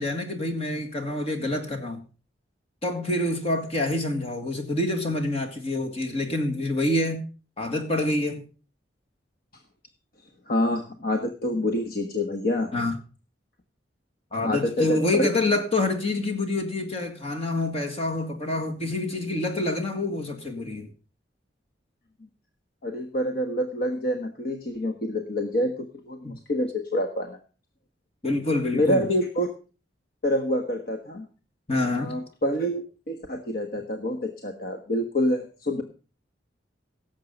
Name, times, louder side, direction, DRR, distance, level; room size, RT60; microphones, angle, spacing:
voice 1, 0.0-2.0 2.8-7.2 7.6-8.4 12.7-12.9 14.3-20.9 26.2-26.4 28.2-29.0 31.7-32.1, left 2 dB, 35° left, 1.8 m, -27 dB
voice 2, 10.5-12.7 14.4-15.3 22.8-27.4 28.7-29.5 30.2-31.2 31.9-35.8, left 1 dB, 55° left, 1.4 m, -27 dB
17.5 x 7.4 x 5.2 m
head